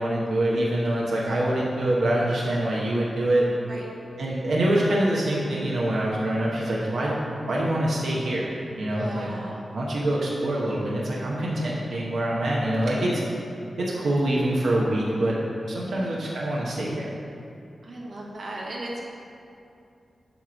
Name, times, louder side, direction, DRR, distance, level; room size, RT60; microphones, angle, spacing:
voice 1, 0.0-3.5 4.2-7.2 7.5-8.5 8.8-9.3 9.7-13.3 13.8-15.4 15.7-17.1, right 1 dB, 85° right, -5 dB, 1.0 m, -25 dB
voice 2, 8.9-9.6 13.0-13.2 15.9-16.1 17.8-19.0, right 1 dB, 55° right, -3 dB, 1.2 m, -37 dB
9.0 x 3.1 x 6.2 m, 2.6 s
wide cardioid pair, 130°, 0 cm